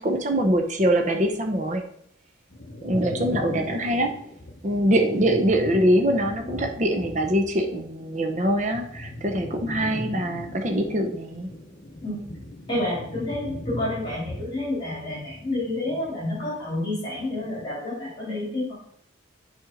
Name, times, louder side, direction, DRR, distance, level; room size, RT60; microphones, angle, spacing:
voice 1, 0.0-1.8 2.8-4.1 4.6-11.5, right 1 dB, 35° right, 4 dB, 0.8 m, -23 dB
sound 1, 2.5-7.8 8.1-16.7 17.0-17.7, left 1 dB, 40° left, 0.8 m, -38 dB
voice 2, 12.7-18.7, left 1 dB, 25° left, -8 dB, 3.1 m, -29 dB
7.5 x 4.4 x 5.1 m, 0.68 s
head